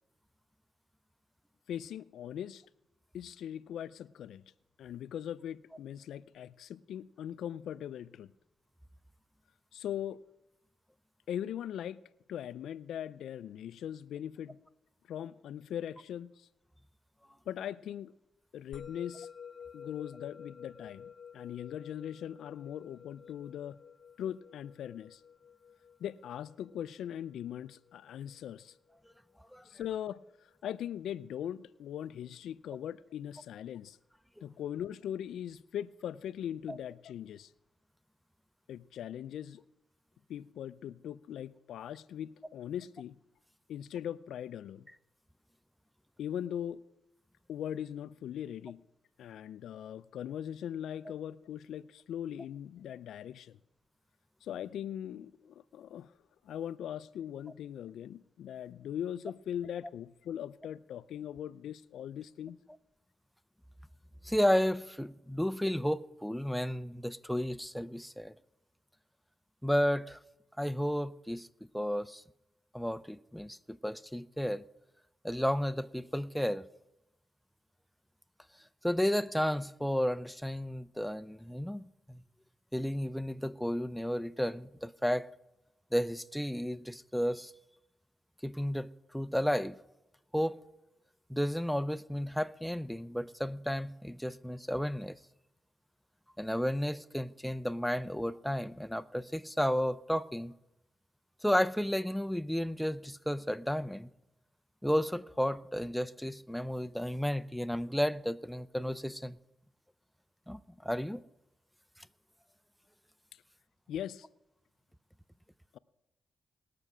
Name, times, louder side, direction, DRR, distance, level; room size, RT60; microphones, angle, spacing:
voice 1, 1.7-2.6 3.1-4.4 4.8-8.3 9.7-10.2 11.3-12.0 12.3-14.6 15.1-16.5 17.5-18.1 18.5-19.3 19.7-23.8 24.2-25.2 26.0-28.7 29.7-30.2 30.6-34.0 34.4-37.5 38.7-39.6 40.3-43.2 43.7-44.9 46.2-46.8 47.5-48.8 49.2-53.6 54.4-56.1 56.5-62.6 113.9-114.3 115.7-115.8, left 10 dB, 85° left, 0.4 m, -40 dB
Musical instrument, 18.7-29.3, left 7 dB, 60° left, 0.8 m, -52 dB
voice 2, 64.2-68.4 69.6-70.2 70.6-71.5 71.7-72.2 72.7-74.7 75.2-76.7 78.8-82.2 82.7-85.3 85.9-87.5 88.4-89.8 90.3-90.6 91.3-95.2 96.4-100.5 101.4-104.1 104.8-109.4 110.5-111.2 112.0-112.1, equal, ahead, 0.5 m, -32 dB
20.0 x 6.7 x 6.1 m
cardioid pair, 80°, 0 cm